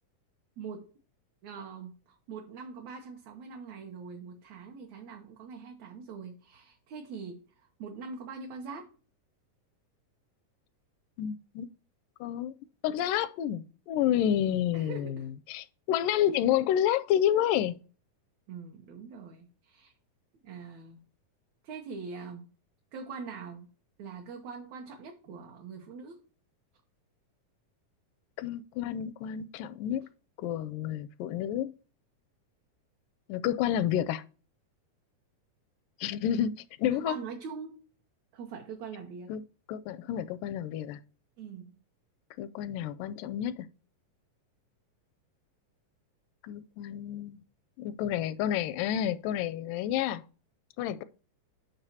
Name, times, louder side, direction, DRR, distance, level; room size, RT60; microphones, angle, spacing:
voice 1, 0.6-0.9 1.4-8.9 14.7-15.3 18.5-19.9 20.4-21.0 21.6-22.5 22.9-23.7 24.0-26.2 36.9-37.8 38.3-39.3 41.4-41.8, right 5 dB, 65° right, 2.1 m, -43 dB
voice 2, 11.2-11.7 12.2-12.5 12.8-17.8 28.4-30.1 30.4-31.7 33.3-34.2 36.0-37.2 39.3-39.4 39.7-41.0 42.4-43.7 46.4-47.4 47.8-50.2 50.8-51.0, left 10 dB, 85° left, 2.1 m, -29 dB
10.0 x 6.3 x 2.8 m
omnidirectional pair, 3.9 m